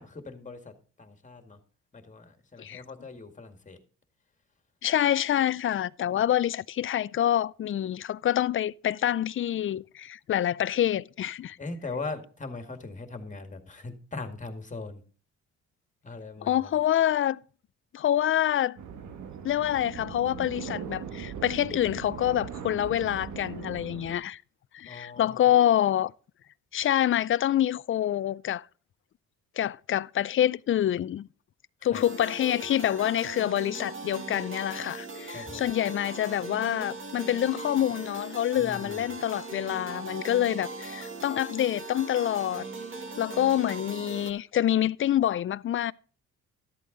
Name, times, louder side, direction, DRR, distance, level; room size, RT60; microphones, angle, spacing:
voice 1, 0.0-1.6 1.9-3.8 11.6-15.0 16.0-16.7 24.8-25.5 31.8-32.0 35.3-35.7 38.5-39.0, left 3 dB, 25° left, 2.1 m, -40 dB
voice 2, 4.8-11.6 16.4-17.4 17.9-18.8 19.4-24.4 24.7-26.1 26.7-28.7 29.6-31.3 31.8-42.6 43.2-45.9, left 11 dB, 45° left, 0.4 m, -26 dB
sound 1, 18.8-24.1, right 7 dB, 75° right, 1.5 m, -39 dB
sound 2, 31.9-44.3, right 3 dB, 40° right, 2.1 m, -40 dB
13.0 x 8.4 x 3.9 m
cardioid pair, 90°, 30 cm